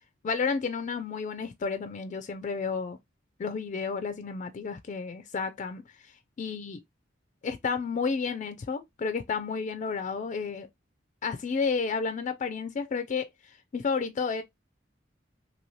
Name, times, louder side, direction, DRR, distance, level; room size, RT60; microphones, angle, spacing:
voice 1, 0.2-3.0 3.4-6.8 7.4-10.7 11.2-14.4, left 5 dB, 40° left, 0.3 m, -31 dB
2.7 x 2.7 x 3.0 m
head